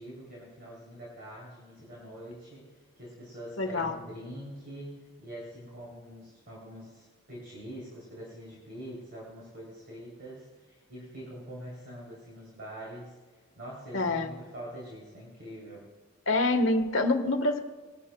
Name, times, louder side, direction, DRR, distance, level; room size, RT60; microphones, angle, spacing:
voice 1, 0.0-15.9, equal, 50° right, -5 dB, 3.1 m, -44 dB
voice 2, 3.6-4.0 13.9-14.3 16.3-17.6, left 2 dB, 70° left, 5 dB, 1.3 m, -26 dB
20.5 x 11.5 x 2.2 m, 1.4 s
head